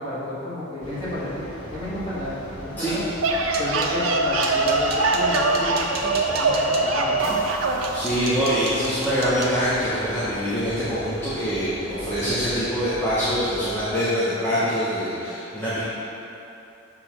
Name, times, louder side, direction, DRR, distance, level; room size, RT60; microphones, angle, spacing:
voice 1, 0.0-1.4 1.7-3.0 3.6-7.4, left 1 dB, 25° left, -9 dB, 1.4 m, -31 dB
sound 1, 0.8-13.9, equal, 80° left, 1.4 m, -37 dB
sound 2, 3.1-4.0 4.4-6.8 7.4-7.5 7.8-12.0 12.4-12.8 13.1-13.3 13.7-13.8, right 4 dB, 50° right, 0.7 m, -37 dB
sound 3, 3.2-8.0, right 3 dB, 90° right, 0.5 m, -23 dB
voice 2, 7.9-15.8, equal, 10° left, -13 dB, 0.9 m, -24 dB
6.9 x 2.9 x 5.6 m, 2.9 s
head